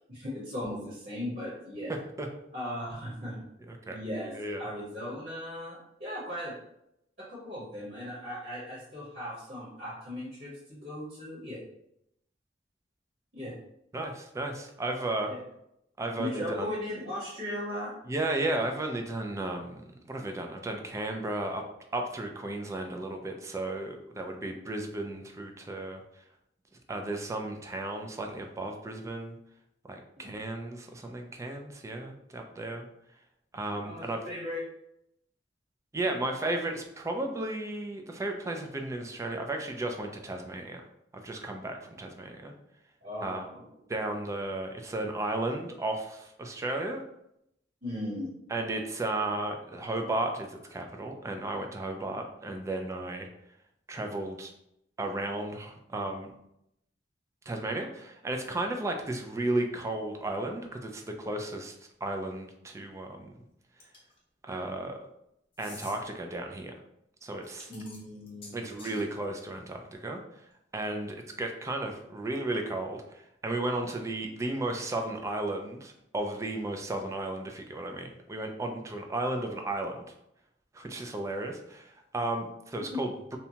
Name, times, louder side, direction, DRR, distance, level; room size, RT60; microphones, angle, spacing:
voice 1, 0.1-2.0 2.5-3.4 3.9-4.3 4.6-6.6 7.2-11.6 13.3-13.5 15.3-15.4 16.2-17.9 30.2-30.3 33.8-34.6 43.0-43.7 47.8-48.3 67.7-69.1 82.9-83.0, left 1 dB, 55° right, -8 dB, 1.1 m, -37 dB
voice 2, 4.2-4.6 13.9-15.3 16.0-16.7 18.1-21.6 21.9-26.0 26.9-29.4 29.9-32.9 33.5-34.2 35.9-40.8 41.1-42.5 43.2-43.4 43.9-47.0 48.5-53.3 53.9-54.5 55.0-56.3 57.5-61.8 62.0-63.3 64.4-65.0 65.6-66.7 67.2-67.7 68.5-70.2 70.7-80.1 80.7-83.4, right 2 dB, 15° right, 4 dB, 0.3 m, -34 dB
sound 1, 63.8-64.2 65.5-66.0 67.4-69.0, left 2 dB, 30° left, 0.7 m, -48 dB
2.7 x 2.2 x 2.7 m, 0.80 s
head